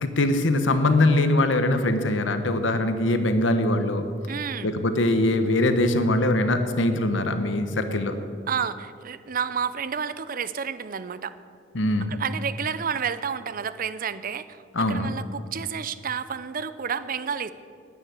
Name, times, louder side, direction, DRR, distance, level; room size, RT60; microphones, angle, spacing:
voice 1, 0.0-4.0 4.6-8.1 11.7-12.1 14.7-15.1, left 1 dB, 75° left, 8 dB, 1.1 m, -22 dB
voice 2, 4.3-4.7 8.5-11.4 12.1-17.5, right 7 dB, 45° right, 15 dB, 0.5 m, -30 dB
9.8 x 9.7 x 9.6 m, 2.4 s
head